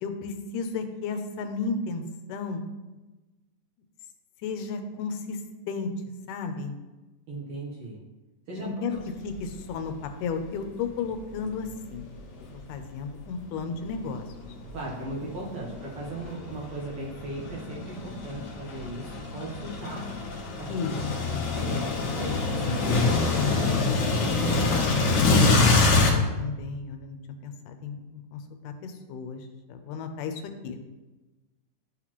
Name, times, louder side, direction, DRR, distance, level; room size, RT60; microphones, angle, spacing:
voice 1, 0.0-2.0 2.3-2.7 4.4-5.4 5.7-5.9 6.3-6.8 8.6-9.0 9.2-12.1 12.7-14.3 20.7-21.3 25.9-27.2 27.4-30.8, left 5 dB, 85° left, 7 dB, 2.2 m, -33 dB
voice 2, 7.3-8.0 8.5-9.0 14.7-20.1 20.6-20.7 21.5-25.0, right 2 dB, 60° right, -4 dB, 1.7 m, -37 dB
sound 1, 9.3-9.5 10.0-10.1 11.1-12.8 13.4-26.1, left 3 dB, 60° left, 1.7 m, -26 dB
12.0 x 4.1 x 3.0 m, 1.1 s
omnidirectional pair, 3.6 m